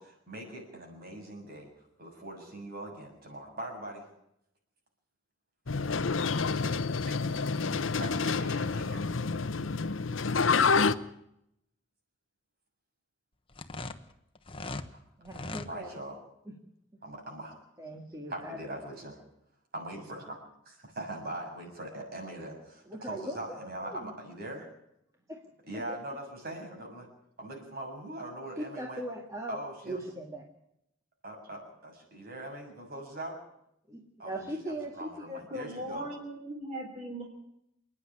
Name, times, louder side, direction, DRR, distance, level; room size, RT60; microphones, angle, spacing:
voice 1, 0.0-1.7 2.0-4.1 8.0-9.1 14.9-15.0 15.7-16.2 17.0-17.6 18.3-19.2 19.7-20.4 20.7-24.7 25.7-27.1 27.4-29.0 29.5-30.0 31.2-33.4 34.2-36.1, right 1 dB, 50° right, 2 dB, 7.1 m, -41 dB
sound 1, 5.7-10.9, left 4 dB, 80° left, 0.9 m, -28 dB
scratching rubber, 13.5-14.9 15.2-15.7, left 2 dB, 25° left, 1.1 m, -39 dB
voice 2, 15.2-15.9 16.5-16.6 17.8-18.7 22.9-23.4 23.8-24.1 25.3-25.4 25.7-26.0 28.6-29.6 29.9-30.5 33.9-35.4, right 1 dB, 15° right, 1 dB, 2.0 m, -39 dB
voice 3, 35.5-37.2, right 1 dB, 35° right, -1 dB, 3.6 m, -38 dB
28.0 x 10.0 x 9.9 m, 0.79 s
head